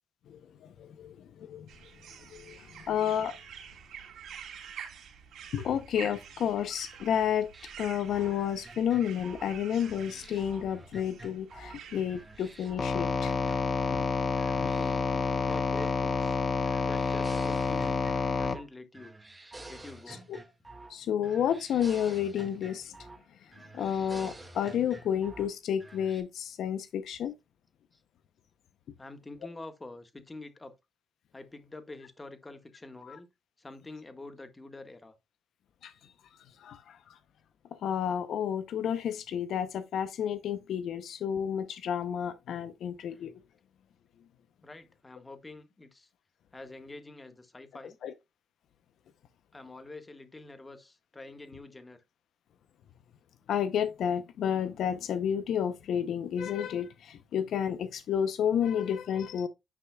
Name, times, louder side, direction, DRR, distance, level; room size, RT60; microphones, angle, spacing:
voice 1, 0.3-1.7 2.3-3.3 5.5-7.5 7.8-13.4 13.9-14.0 20.1-20.4 20.9-23.0 23.4-27.3 33.0-33.2 35.8-35.9 36.6-37.2 37.8-43.3 48.0-48.1 53.5-59.5, left 9 dB, 70° left, 0.6 m, -31 dB
sound 1, 1.7-12.7, right 8 dB, 75° right, 3.4 m, -48 dB
sound 2, 7.5-11.8 12.1-14.1 14.4-16.4 16.7-18.7 18.9-21.0 21.2-23.2 23.5-25.5 25.8-26.2, right 2 dB, 20° right, 1.7 m, -49 dB
sound 3, 12.8-18.6, left 4 dB, 35° left, 0.8 m, -29 dB
voice 2, 14.5-16.4 16.8-19.1 19.7-20.2 27.9-28.0 29.0-30.7 31.3-33.3 33.6-35.1 43.1-43.3 44.6-46.1 46.5-48.0 49.5-52.0, left 2 dB, 20° left, 1.5 m, -46 dB
9.7 x 5.6 x 2.3 m
cardioid pair, 90°, 0 cm